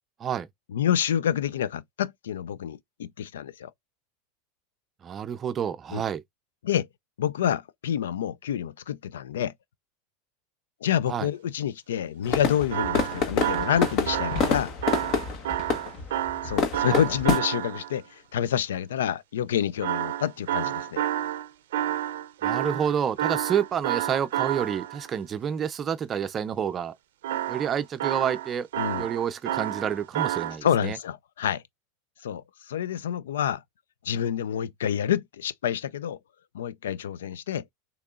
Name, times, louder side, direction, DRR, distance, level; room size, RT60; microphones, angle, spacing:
voice 1, 0.7-3.7 5.9-6.0 6.6-6.9 7.2-9.5 10.8-14.7 16.4-21.0 28.8-29.1 30.6-31.6 32.2-33.6 34.0-36.2 36.5-37.6, left 9 dB, 90° left, 0.4 m, -28 dB
voice 2, 5.0-6.2 11.1-11.3 16.8-17.0 22.4-26.9 27.5-28.7 29.0-31.0, right 8 dB, 30° right, 0.4 m, -29 dB
sound 1, 12.2-17.4, left 4 dB, 45° left, 1.2 m, -27 dB
sound 2, 12.7-18.0 19.8-25.1 27.2-30.6, right 12 dB, 80° right, 0.5 m, -30 dB
6.5 x 2.9 x 2.4 m
supercardioid pair, 110°, 0 cm